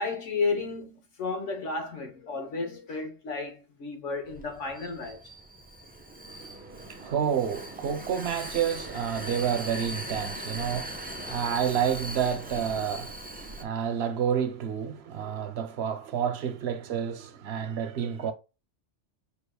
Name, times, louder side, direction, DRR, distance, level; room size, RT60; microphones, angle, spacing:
voice 1, 0.0-5.2, left 4 dB, 90° left, 1.4 m, -32 dB
Vehicle, 4.3-13.6, right 1 dB, 10° right, 0.4 m, -40 dB
voice 2, 6.3-18.3, right 8 dB, 65° right, 0.9 m, -30 dB
5.2 x 3.4 x 2.3 m
omnidirectional pair, 1.2 m